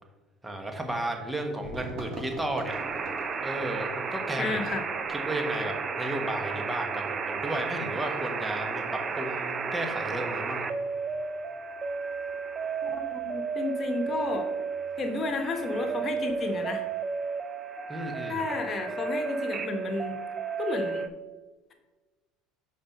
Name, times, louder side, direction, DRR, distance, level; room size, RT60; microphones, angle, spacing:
voice 1, 0.4-2.7 3.4-4.6 5.1-10.7 17.9-18.4, right 1 dB, 10° right, 4 dB, 1.2 m, -33 dB
sound 1, 1.6-17.0, right 1 dB, 60° right, 1.3 m, -49 dB
sound 2, 2.7-21.1, right 5 dB, 35° right, 0.6 m, -33 dB
voice 2, 4.4-4.8 12.8-14.5 15.0-16.8 18.3-20.2 20.6-21.1, left 3 dB, 40° left, 5 dB, 1.1 m, -32 dB
5.3 x 4.4 x 5.3 m, 1.2 s
supercardioid pair, 90°, 0 cm